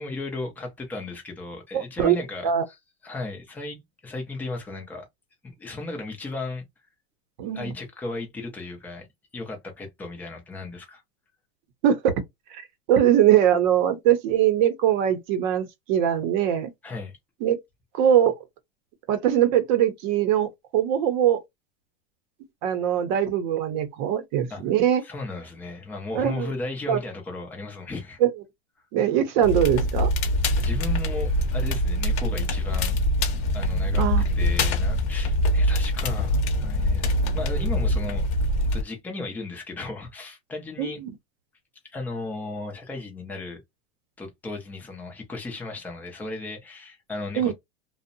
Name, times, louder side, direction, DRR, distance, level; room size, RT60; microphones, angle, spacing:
voice 1, 0.0-5.1 5.4-6.6 7.5-9.1 9.3-11.0 16.8-17.2 24.5-24.6 25.0-28.2 30.6-33.0 33.5-34.0 34.4-38.3 38.7-41.0 41.8-43.6 44.2-47.5, left 3 dB, 5° left, 0.4 m, -35 dB
voice 2, 1.7-2.2 2.4-2.6 7.4-7.7 11.8-12.1 12.5-12.6 12.9-16.7 17.4-17.6 18.0-18.3 19.1-21.4 22.6-25.0 26.1-26.5 26.9-27.0 28.2-28.3 28.9-30.1 34.0-34.2 40.8-41.1 47.4-47.5, right 10 dB, 45° right, 0.6 m, -21 dB
Crackle, 29.4-38.8, left 1 dB, 40° left, 0.7 m, -24 dB
2.6 x 2.0 x 2.5 m
supercardioid pair, 160°, 32 cm